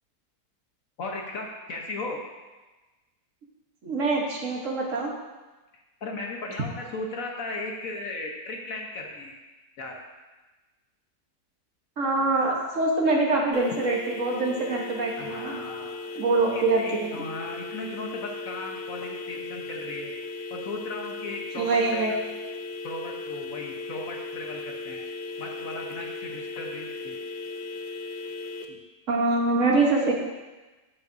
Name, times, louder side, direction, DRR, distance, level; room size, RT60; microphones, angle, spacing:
voice 1, 1.0-2.2 6.0-9.4 9.8-9.9 15.2-16.0 16.5-20.1 20.5-22.2 22.8-25.0 25.4-27.2 28.7-28.8, left 2 dB, 60° left, 1 dB, 1.3 m, -36 dB
voice 2, 3.8-5.1 12.0-15.6 16.1-17.2 21.5-22.1 29.1-30.1, right 3 dB, 55° right, -1 dB, 1.4 m, -24 dB
sound 1, 13.5-28.6, left 3 dB, 85° left, 1.2 m, -37 dB
13.0 x 5.7 x 2.6 m, 1.2 s
omnidirectional pair, 1.7 m